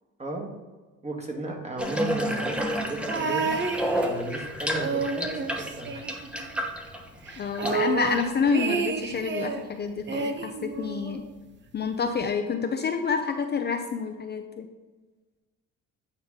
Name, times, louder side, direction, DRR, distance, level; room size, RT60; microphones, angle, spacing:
voice 1, 0.2-0.5 1.0-6.1 7.6-7.8, right 2 dB, 20° right, 1 dB, 1.8 m, -35 dB
Water tap faucet / Bathtub (filling or washing), 1.8-8.3, equal, 5° right, 1.0 m, -31 dB
sound 1, 3.1-4.4 4.7-6.6 6.9-7.0 7.3-9.6 10.1-11.3 12.2-12.3, right 4 dB, 35° right, 0.7 m, -30 dB
voice 2, 7.4-11.2 11.7-14.7, left 5 dB, 35° left, 5 dB, 0.6 m, -28 dB
9.2 x 4.8 x 3.7 m, 1.3 s
cardioid pair, 95°, 30 cm